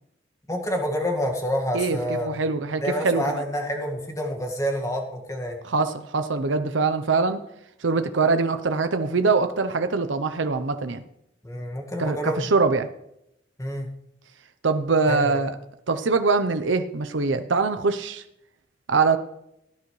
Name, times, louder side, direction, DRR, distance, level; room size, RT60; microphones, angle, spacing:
voice 1, 0.5-2.4 2.8-5.6 11.4-12.5 13.6-13.9 15.1-15.4, equal, 15° left, 2 dB, 1.9 m, -28 dB
voice 2, 1.7-3.4 5.6-7.4 7.8-11.0 12.0-12.9 14.6-15.5 15.9-18.2 18.9-19.2, right 4 dB, 75° right, 9 dB, 0.8 m, -23 dB
18.0 x 10.5 x 3.2 m, 0.79 s
head